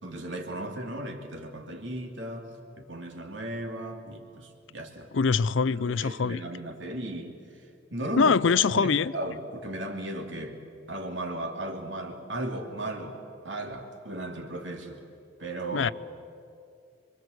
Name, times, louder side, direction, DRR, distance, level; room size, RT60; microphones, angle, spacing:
voice 1, 0.0-5.1 5.7-7.7 7.9-8.4 8.7-10.6 10.9-13.2 13.4-15.0 15.4-15.9, right 1 dB, 65° right, 2.9 m, -36 dB
voice 2, 5.1-6.4 8.2-9.1 15.7-15.9, left 5 dB, 70° left, 0.5 m, -23 dB
27.0 x 23.5 x 8.0 m
head